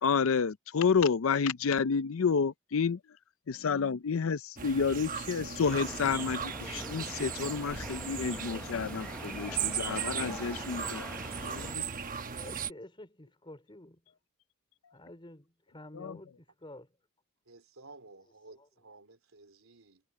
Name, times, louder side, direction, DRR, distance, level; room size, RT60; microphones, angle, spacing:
voice 1, 0.0-3.0 3.5-11.1 11.4-11.8 16.0-16.1, left 5 dB, 70° left, 0.5 m, -30 dB
sound 1, 4.6-12.7, right 7 dB, 40° right, 1.0 m, -37 dB
sound 2, 5.6-11.8, left 1 dB, 5° left, 0.7 m, -44 dB
voice 2, 7.6-8.1 17.5-20.0, right 3 dB, 75° right, 3.6 m, -54 dB
voice 3, 12.3-14.1 14.9-17.0 18.2-18.9, left 1 dB, 25° left, 3.7 m, -50 dB
head